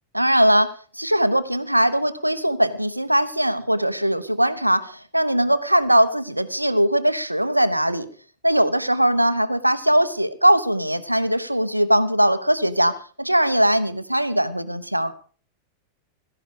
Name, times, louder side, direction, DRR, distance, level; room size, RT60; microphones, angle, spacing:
voice 1, 0.1-8.1 8.4-15.1, equal, 85° right, 12 dB, 1.1 m, -20 dB
17.0 x 14.5 x 5.0 m, 0.41 s
figure-of-eight pair, 90°, 0 cm